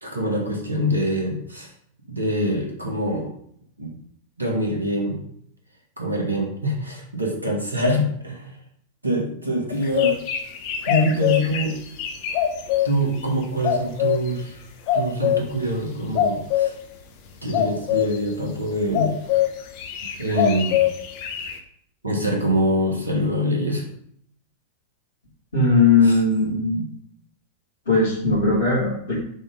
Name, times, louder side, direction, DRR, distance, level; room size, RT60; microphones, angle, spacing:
voice 1, 0.0-1.7 2.1-3.3 3.8-3.9 4.4-5.2 6.0-8.5 9.0-10.2 10.8-11.8 12.8-14.6 14.9-16.7 17.4-19.2 20.2-20.8 22.0-23.9 26.0-26.2, equal, 80° right, 0 dB, 1.7 m, -24 dB
sound 1, 9.7-12.9 13.6-14.3 14.9-15.4 16.2-16.7 17.5-18.2 18.9-19.5 19.8-21.6, left 11 dB, 45° left, 0.9 m, -22 dB
voice 2, 25.5-26.8 27.9-29.2, left 3 dB, 70° left, -9 dB, 2.4 m, -19 dB
6.3 x 3.5 x 5.2 m, 0.68 s
figure-of-eight pair, 90°, 0 cm